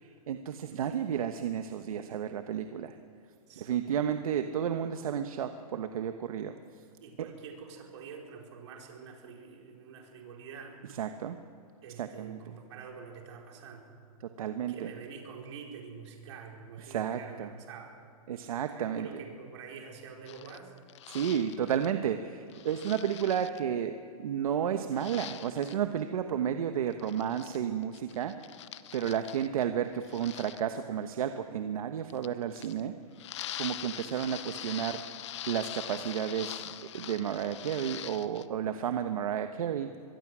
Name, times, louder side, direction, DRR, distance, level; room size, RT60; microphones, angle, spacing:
voice 1, 0.3-2.9 3.6-6.5 10.9-11.4 12.0-12.4 14.4-14.9 16.8-17.5 18.3-19.1 21.1-23.9 24.2-28.4 28.9-32.9 33.6-35.0 35.5-36.6 36.9-39.9, right 9 dB, 65° right, 8 dB, 1.2 m, -32 dB
voice 2, 7.0-10.8 11.8-13.9 14.7-18.0 18.7-20.7, right 6 dB, 50° right, 0 dB, 4.6 m, -46 dB
sound 1, 20.3-21.9 22.5-23.6 25.0-25.8 26.9-27.6 27.8-29.6 30.0-30.6 32.1-32.8 33.2-38.5, left 12 dB, 50° left, 0.9 m, -43 dB
24.0 x 22.5 x 6.2 m, 2.4 s
hypercardioid pair, 170°, 19 cm